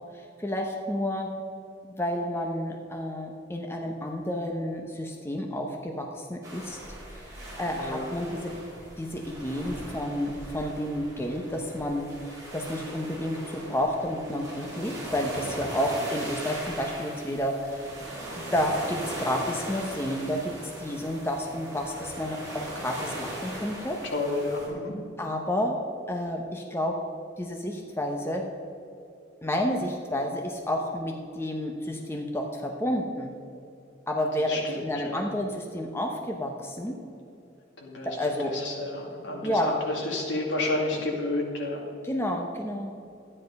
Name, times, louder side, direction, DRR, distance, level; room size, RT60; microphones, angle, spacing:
voice 1, 0.1-1.3 1.8-6.8 7.2-7.3 7.6-8.5 9.0-17.9 18.5-20.5 20.8-24.0 25.2-25.8 26.1-26.9 27.4-28.4 29.4-33.3 34.1-36.9 38.0-38.5 39.4-39.7 42.0-42.9, left 1 dB, 15° left, 2 dB, 0.8 m, -30 dB
sound 1, 6.4-24.7, right 1 dB, 15° right, 3.6 m, -39 dB
voice 2, 7.7-8.1 24.1-24.9 34.5-35.2 37.8-41.8, left 2 dB, 70° left, -1 dB, 2.3 m, -31 dB
13.0 x 9.9 x 5.3 m, 2.6 s
head